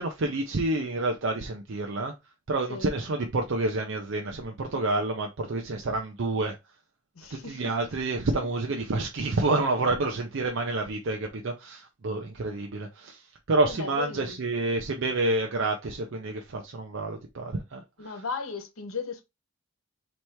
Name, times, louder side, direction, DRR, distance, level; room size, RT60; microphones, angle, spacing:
voice 1, 0.0-2.1 2.5-6.5 7.3-18.2, right 2 dB, 60° right, 0.6 m, -29 dB
voice 2, 7.1-7.7 8.4-8.5 13.7-14.4 18.0-19.2, left 5 dB, 80° left, 1.0 m, -36 dB
3.3 x 3.0 x 4.4 m
head